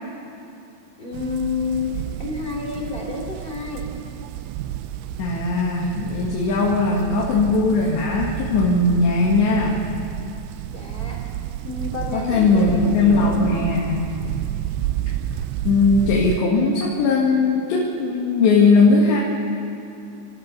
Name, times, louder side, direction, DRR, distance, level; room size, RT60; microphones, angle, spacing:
voice 1, 1.0-3.8 10.7-11.2 11.6-13.7, left 4 dB, 15° left, -1 dB, 2.7 m, -29 dB
sound 1, 1.1-16.4, right 13 dB, 80° right, 2.8 m, -31 dB
voice 2, 5.2-9.8 12.1-14.1 15.6-19.2, left 3 dB, 70° left, -3 dB, 4.0 m, -19 dB
29.0 x 14.0 x 6.8 m, 2.8 s
omnidirectional pair, 5.3 m